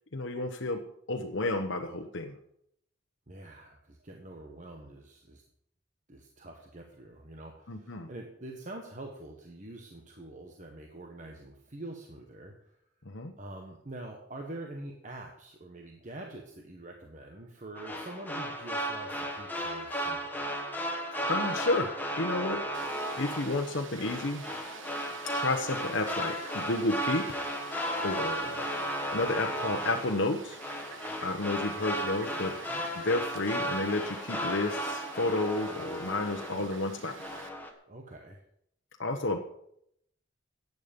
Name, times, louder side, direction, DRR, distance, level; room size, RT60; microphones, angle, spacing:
voice 1, 0.1-0.8 1.1-2.4 7.7-8.1 13.1-13.3 21.3-22.9 23.2-24.4 25.3-27.3 27.7-28.6 29.1-30.6 31.2-37.1 39.0-39.4, left 2 dB, 70° left, 2 dB, 1.1 m, -31 dB
voice 2, 3.3-5.4 6.1-12.8 13.4-20.4 32.7-32.8 37.9-38.4, right 2 dB, 40° right, 2 dB, 1.4 m, -45 dB
sound 1, 17.8-36.9 37.2-37.7, equal, 10° left, 1.6 m, -35 dB
Fowl, 22.7-37.5, right 5 dB, 90° right, 1.2 m, -49 dB
15.0 x 9.5 x 5.3 m, 0.73 s
head